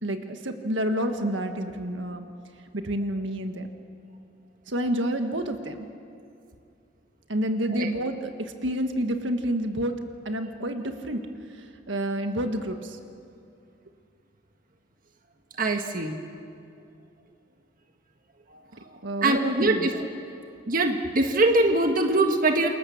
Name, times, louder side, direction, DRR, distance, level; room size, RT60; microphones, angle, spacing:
voice 1, 0.0-2.3 2.7-3.7 4.7-5.9 7.3-10.0 10.2-11.2 11.9-13.0 19.0-19.9, right 1 dB, 70° right, 6 dB, 1.6 m, -29 dB
voice 2, 15.6-16.2 19.2-19.9 20.7-22.7, right 2 dB, 45° right, 4 dB, 1.6 m, -22 dB
28.5 x 24.0 x 7.3 m, 2.5 s
head